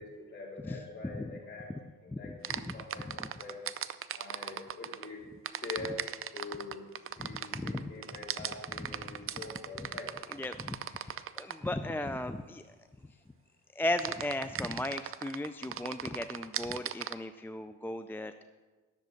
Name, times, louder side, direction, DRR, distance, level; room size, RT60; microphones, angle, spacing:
voice 1, 0.0-1.7 2.0-3.6 4.1-5.3 5.6-6.9 7.2-10.1, left 3 dB, 35° left, -3 dB, 3.8 m, -44 dB
voice 2, 2.1-3.3 7.2-7.3 7.5-7.9 9.0-9.2 9.8-9.9 10.3-12.6 13.8-18.4, left 1 dB, 5° left, 9 dB, 0.4 m, -37 dB
sound 1, 2.4-5.1 5.4-11.7 14.0-17.1, right 10 dB, 45° right, 0.5 m, -38 dB
10.5 x 7.3 x 6.5 m, 1.3 s
cardioid pair, 90°, 30 cm